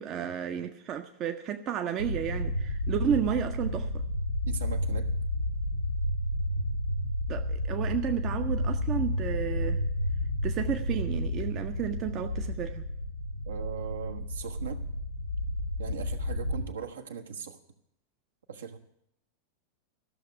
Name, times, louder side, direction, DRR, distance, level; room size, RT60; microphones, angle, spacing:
voice 1, 0.0-3.9 7.3-9.8 10.4-12.8, right 9 dB, 35° right, 6 dB, 0.7 m, -32 dB
sound 1, 2.0-16.6, left 1 dB, 90° left, 2.5 m, -31 dB
voice 2, 4.4-5.1 13.5-14.8 15.8-17.6 18.5-18.8, right 6 dB, 65° right, 6 dB, 1.1 m, -39 dB
14.0 x 6.8 x 10.0 m, 0.77 s
figure-of-eight pair, 90°, 0 cm